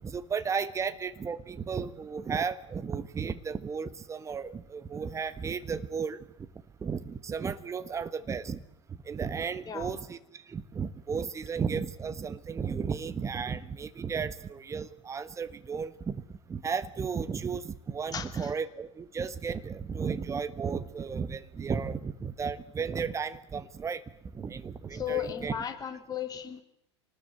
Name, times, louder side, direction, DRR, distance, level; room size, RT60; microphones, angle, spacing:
voice 1, 0.0-6.2 6.8-8.6 9.1-10.2 10.5-16.2 16.5-24.0 24.3-25.5, right 6 dB, 20° right, 12 dB, 1.4 m, -34 dB
voice 2, 9.7-10.0 18.1-18.5 24.9-26.6, left 9 dB, 25° left, 6 dB, 3.1 m, -35 dB
25.5 x 19.5 x 8.0 m, 0.74 s
figure-of-eight pair, 85°, 15 cm